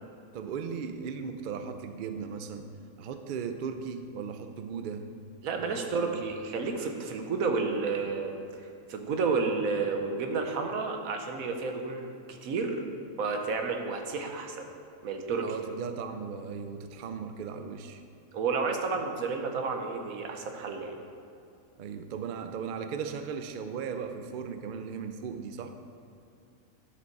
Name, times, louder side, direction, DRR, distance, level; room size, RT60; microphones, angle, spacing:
voice 1, 0.3-2.7 3.0-5.1 5.6-6.2 15.4-18.0 21.8-25.7, right 6 dB, 60° right, 7 dB, 0.5 m, -37 dB
voice 2, 5.4-8.3 8.9-12.8 13.2-14.7 15.0-15.5 18.3-21.0, right 4 dB, 85° right, 4 dB, 1.3 m, -31 dB
11.5 x 5.2 x 4.6 m, 2.5 s
omnidirectional pair, 1.4 m